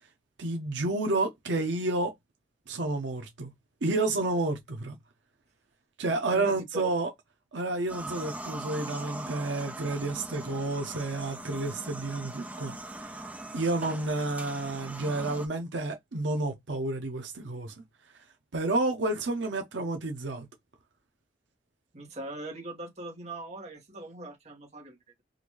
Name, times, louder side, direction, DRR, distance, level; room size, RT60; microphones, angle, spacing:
voice 1, 0.4-2.1 2.7-3.5 3.8-5.0 6.0-7.1 7.5-12.8 13.1-13.2 13.5-17.7 18.5-20.5, right 2 dB, 85° right, 0.8 m, -30 dB
voice 2, 6.3-6.6 21.9-25.2, right 1 dB, 40° right, 1.4 m, -41 dB
sound 1, 7.9-15.5, right 1 dB, 10° right, 0.6 m, -41 dB
3.8 x 2.6 x 3.0 m
head